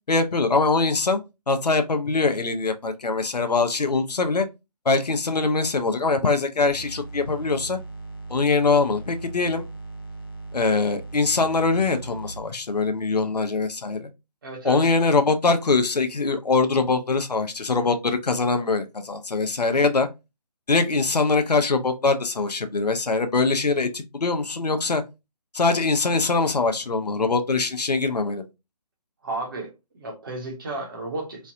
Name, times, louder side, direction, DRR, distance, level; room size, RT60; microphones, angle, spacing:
voice 1, 0.1-1.2 1.5-4.5 4.8-7.8 8.3-9.6 10.5-14.1 14.6-20.1 20.7-25.0 25.5-28.4, left 3 dB, 80° left, 0.7 m, -23 dB
sound 1, 6.7-12.4, right 2 dB, 35° left, 0.5 m, -38 dB
voice 2, 14.4-14.8 29.2-31.5, right 2 dB, 30° right, 1.1 m, -33 dB
3.1 x 2.4 x 2.7 m
figure-of-eight pair, 160°, 20 cm